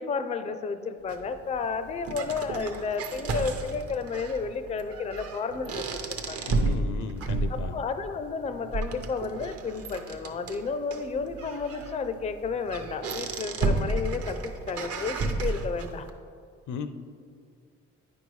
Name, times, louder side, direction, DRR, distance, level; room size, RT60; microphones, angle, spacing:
voice 1, 0.0-6.5 7.5-16.1, left 5 dB, 20° left, 10 dB, 0.4 m, -32 dB
sound 1, 1.1-16.1, right 3 dB, 50° right, 0.7 m, -33 dB
voice 2, 6.5-7.8 16.7-16.9, left 6 dB, 75° left, 9 dB, 0.5 m, -35 dB
9.0 x 5.3 x 3.1 m, 2.2 s
cardioid pair, 90°, 30 cm